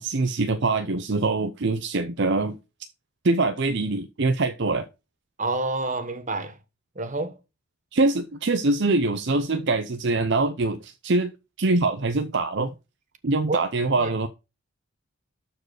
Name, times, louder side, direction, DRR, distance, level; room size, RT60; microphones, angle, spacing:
voice 1, 0.0-2.6 3.2-4.9 7.9-11.3 11.6-12.7 13.2-14.3, right 3 dB, 55° right, 0.6 m, -24 dB
voice 2, 5.4-6.6 6.9-7.4 13.5-13.6 14.0-14.2, right 2 dB, 35° right, 1.2 m, -28 dB
12.5 x 4.7 x 4.8 m
head